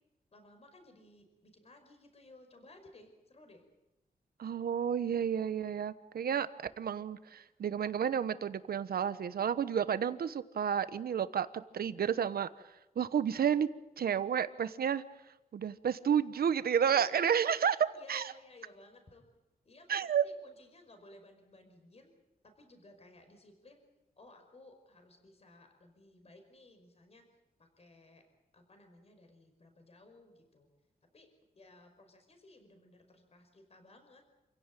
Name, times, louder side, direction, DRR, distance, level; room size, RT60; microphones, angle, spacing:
voice 1, 0.3-3.6 16.8-17.4 17.9-19.3 19.6-22.1 22.4-23.8 24.2-27.3 27.6-28.2 28.5-30.7 31.1-31.3 31.5-34.3, left 2 dB, 40° left, 5 dB, 5.3 m, -58 dB
voice 2, 4.4-6.5 6.8-12.5 13.0-13.7 14.0-15.0 15.5-17.8 18.1-18.2 19.9-20.2, right 8 dB, 75° right, 13 dB, 1.1 m, -31 dB
28.0 x 16.5 x 9.1 m, 0.97 s
wide cardioid pair, 135°, 16 cm